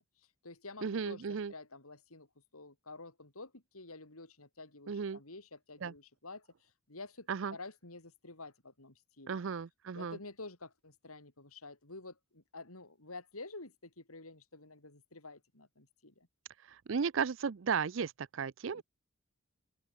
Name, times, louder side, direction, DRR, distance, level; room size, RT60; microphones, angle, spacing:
voice 1, 0.0-2.3 2.5-9.4 9.9-16.3 18.7-18.8, left 3 dB, 90° left, 4.8 m, -50 dB
voice 2, 0.8-1.5 4.9-5.2 5.8-5.9 7.3-7.6 9.3-10.2 16.6-18.8, right 6 dB, 60° right, 0.5 m, -35 dB
open air
head